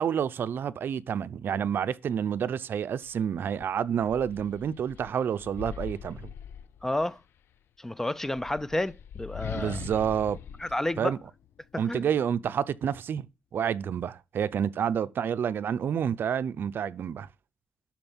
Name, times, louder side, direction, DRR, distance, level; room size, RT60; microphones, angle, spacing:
voice 1, 0.0-6.3 9.6-10.4 11.0-11.2 11.8-13.3 13.5-17.3, right 8 dB, 70° right, 0.6 m, -29 dB
sound 1, 3.0-3.2 3.6-7.2 8.2-11.8, left 8 dB, 85° left, 0.7 m, -42 dB
voice 2, 6.8-7.2 7.8-9.8 10.6-11.1 11.9-12.1, left 1 dB, 10° left, 0.5 m, -30 dB
12.0 x 4.4 x 7.1 m
cardioid pair, 115°, 4 cm